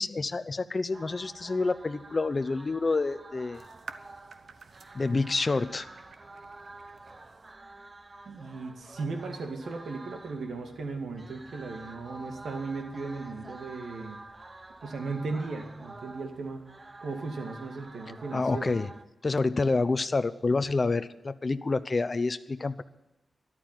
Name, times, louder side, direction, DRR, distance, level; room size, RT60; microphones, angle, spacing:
voice 1, 0.0-3.6 4.9-5.9 18.3-18.9 19.2-22.8, left 3 dB, 35° left, 12 dB, 0.7 m, -28 dB
sound 1, 0.9-19.0, right 2 dB, 25° right, 0.8 m, -49 dB
sound 2, 3.5-7.5, right 5 dB, 70° right, 1.0 m, -50 dB
voice 2, 8.3-14.2 14.8-16.6 17.0-18.7, right 3 dB, 90° right, 4 dB, 2.3 m, -36 dB
13.5 x 11.5 x 9.2 m, 1.0 s
wide cardioid pair, 130°, 0 cm